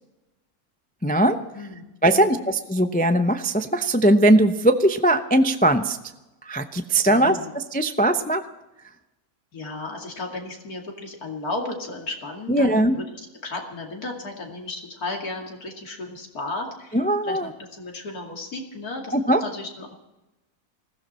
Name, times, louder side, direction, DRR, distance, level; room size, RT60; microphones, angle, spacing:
voice 1, 1.0-1.4 2.0-6.0 6.5-7.4 7.7-8.4 12.5-13.0 16.9-17.5 19.1-19.4, right 1 dB, 15° left, 8 dB, 0.3 m, -19 dB
voice 2, 1.5-2.5 7.1-7.5 9.5-13.0 13.4-19.9, left 2 dB, 75° left, 1 dB, 3.0 m, -34 dB
20.5 x 15.5 x 4.3 m, 1.0 s
omnidirectional pair, 1.6 m